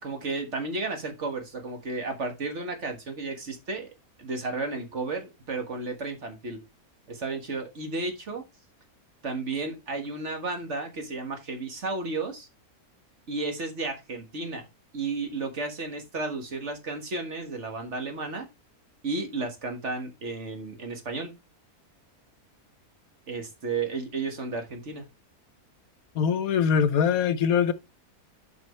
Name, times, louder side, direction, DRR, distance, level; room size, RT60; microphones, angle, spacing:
voice 1, 0.0-3.9 4.2-6.6 7.1-8.4 9.2-12.5 13.3-14.6 14.9-18.5 19.0-21.3 23.3-25.0, right 3 dB, 50° right, 1.8 m, -33 dB
voice 2, 26.2-27.7, left 7 dB, 75° left, 1.1 m, -22 dB
8.5 x 5.5 x 3.1 m
omnidirectional pair, 1.6 m